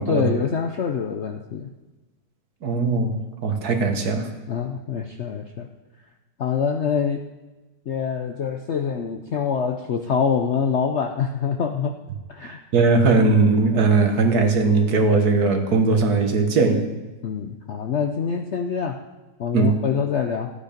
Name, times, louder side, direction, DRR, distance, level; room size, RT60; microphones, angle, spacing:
voice 1, 0.0-1.7 4.5-5.7 6.4-7.2 7.9-12.0 12.3-12.6 17.2-19.0 19.4-20.5, left 6 dB, 75° left, 5 dB, 0.6 m, -25 dB
voice 2, 2.6-4.3 12.7-16.9 19.5-19.8, right 3 dB, 55° right, 5 dB, 1.6 m, -19 dB
14.5 x 8.7 x 5.1 m, 1.1 s
omnidirectional pair, 2.0 m